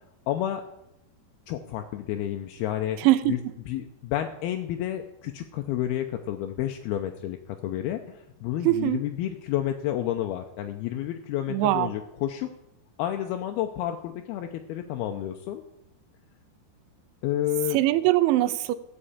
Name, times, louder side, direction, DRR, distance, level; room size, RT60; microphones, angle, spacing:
voice 1, 0.3-0.6 1.5-3.0 3.3-3.4 3.7-7.4 7.6-12.5 13.0-15.6 17.2-17.8, left 12 dB, 80° left, 2.2 m, -30 dB
voice 2, 3.0-3.4 8.7-9.0 11.5-11.9 17.7-18.8, right 16 dB, 85° right, 3.0 m, -22 dB
13.0 x 5.5 x 8.6 m
omnidirectional pair, 5.2 m